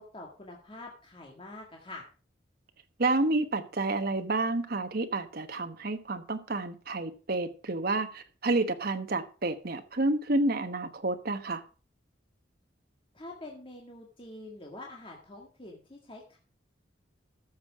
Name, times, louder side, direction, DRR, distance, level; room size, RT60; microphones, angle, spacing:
voice 1, 0.0-2.0 13.1-16.4, left 2 dB, 30° left, -1 dB, 1.8 m, -46 dB
voice 2, 3.0-11.6, right 2 dB, 55° right, 8 dB, 1.1 m, -29 dB
13.5 x 6.6 x 4.8 m, 0.37 s
head